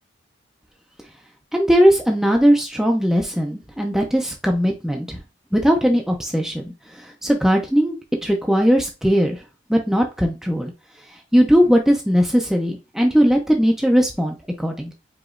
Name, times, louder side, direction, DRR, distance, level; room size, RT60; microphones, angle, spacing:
voice 1, 1.5-5.2 5.5-8.0 8.2-9.4 9.7-10.7 11.3-14.9, equal, ahead, 1 dB, 0.5 m, -19 dB
4.9 x 3.1 x 2.5 m, 0.28 s
head